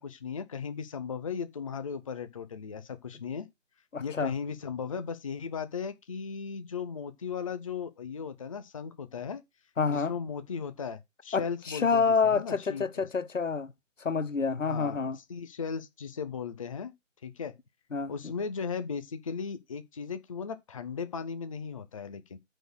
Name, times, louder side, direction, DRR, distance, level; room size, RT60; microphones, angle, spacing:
voice 1, 0.0-3.5 4.0-9.4 9.9-13.1 14.6-16.9 17.2-17.5 18.1-22.4, left 6 dB, 25° left, 0.6 m, -37 dB
voice 2, 3.9-4.3 9.8-10.1 11.3-13.7 14.0-15.2 17.9-18.1, left 5 dB, 90° left, 1.1 m, -28 dB
9.1 x 4.1 x 6.1 m
figure-of-eight pair, 155°, 37 cm